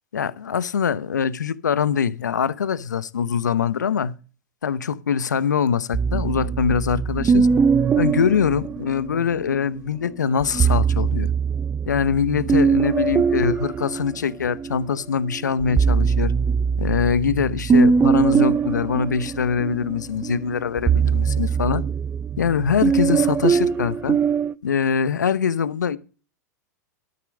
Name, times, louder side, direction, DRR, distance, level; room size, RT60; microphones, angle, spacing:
voice 1, 0.1-4.1 4.6-7.5 8.0-11.3 11.9-16.3 16.8-21.8 22.4-24.2 24.6-26.0, left 7 dB, 85° left, 0.9 m, -23 dB
sound 1, 5.9-9.4 10.4-14.8 15.3-24.5, right 6 dB, 20° right, 0.7 m, -21 dB
13.0 x 7.9 x 5.3 m
hypercardioid pair, 100°, 9 cm